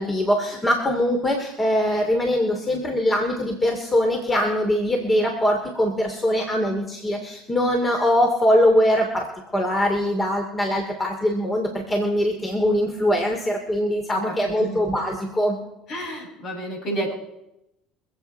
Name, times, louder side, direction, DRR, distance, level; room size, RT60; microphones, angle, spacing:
voice 1, 0.0-9.3 9.5-15.6, equal, 20° left, 3 dB, 2.7 m, -22 dB
voice 2, 14.3-14.8 15.9-17.1, right 1 dB, 55° left, 0 dB, 7.0 m, -30 dB
25.0 x 8.5 x 4.5 m, 0.87 s
hypercardioid pair, 75°, 0 cm